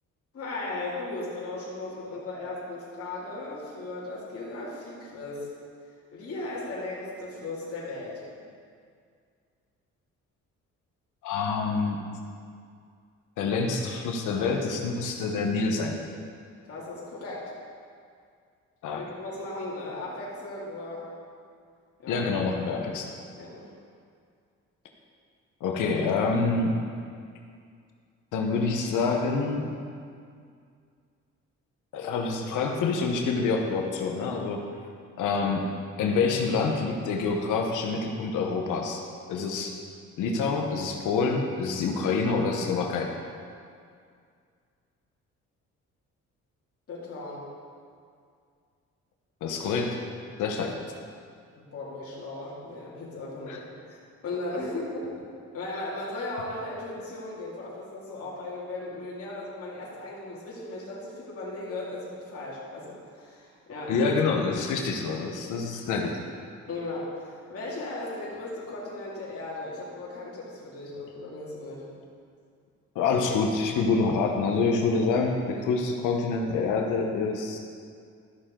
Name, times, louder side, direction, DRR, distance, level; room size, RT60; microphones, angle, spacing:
voice 1, 0.3-5.5 6.1-8.5 16.7-17.5 19.0-21.1 22.0-22.3 23.4-23.7 46.9-47.4 51.6-54.0 54.2-55.0 55.5-63.9 66.7-71.9, left 2 dB, 50° left, -7 dB, 2.5 m, -37 dB
voice 2, 11.2-12.0 13.4-16.0 18.8-19.0 22.1-23.1 25.6-26.7 28.3-29.7 31.9-34.6 35.2-35.7 36.0-39.0 39.3-39.8 40.2-43.1 49.4-50.0 50.4-50.8 53.5-53.6 63.9-66.2 72.9-77.6, left 4 dB, 85° left, 2 dB, 1.0 m, -27 dB
13.0 x 6.6 x 3.8 m, 2.2 s
cardioid pair, 90°, 30 cm